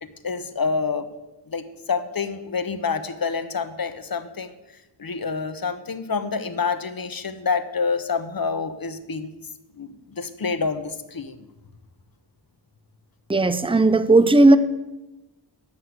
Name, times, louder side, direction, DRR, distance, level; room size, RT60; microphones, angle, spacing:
voice 1, 0.0-1.1 1.5-4.5 5.0-9.3 9.7-11.4, left 5 dB, 50° left, 10 dB, 1.0 m, -27 dB
voice 2, 13.3-14.6, right 2 dB, 10° right, 13 dB, 0.6 m, -15 dB
10.0 x 6.4 x 7.8 m, 1.0 s
wide cardioid pair, 60°, 46 cm